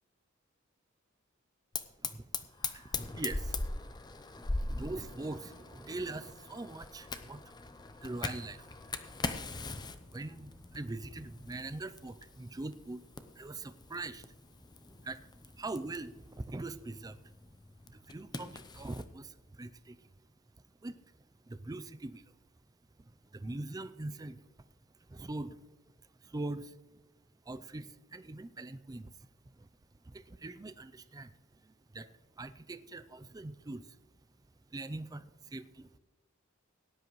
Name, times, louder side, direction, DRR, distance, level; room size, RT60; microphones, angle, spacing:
Fire, 1.7-19.1, left 3 dB, 20° left, 0.6 m, -42 dB
voice 1, 2.0-2.5 2.7-3.6 4.6-7.5 8.0-8.7 10.1-13.0 13.4-14.2 15.0-17.2 17.9-20.1 20.8-21.0 21.5-22.2 23.0-24.4 25.1-25.6 26.2-27.0 27.5-29.1 29.6-29.7 30.0-32.1 32.4-34.0 34.7-36.0, right 2 dB, 20° right, 12 dB, 0.4 m, -42 dB
17.5 x 10.5 x 3.1 m, 1.1 s
head